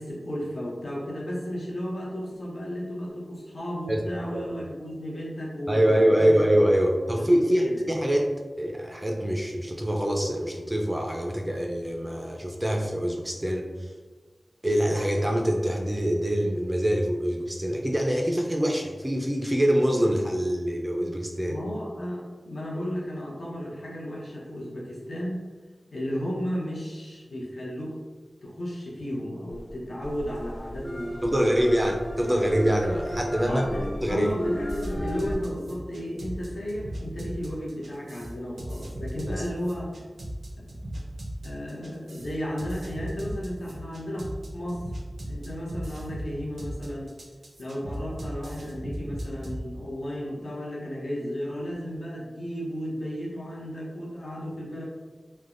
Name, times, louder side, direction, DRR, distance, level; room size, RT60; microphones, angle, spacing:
voice 1, 0.0-6.4 7.1-7.8 21.5-25.5 25.9-28.0 28.4-31.8 33.4-39.9 41.4-44.9 45.2-47.1 47.6-54.8, equal, 80° left, -5 dB, 0.8 m, -34 dB
voice 2, 5.7-13.9 14.6-21.6 31.2-33.7 34.0-34.3, equal, 15° right, 1 dB, 0.3 m, -24 dB
sound 1, 29.5-35.4, equal, 30° left, 0.5 m, -34 dB
sound 2, 34.7-49.6, right 1 dB, 85° right, 0.5 m, -37 dB
3.2 x 2.1 x 2.4 m, 1.4 s
wide cardioid pair, 85°, 0 cm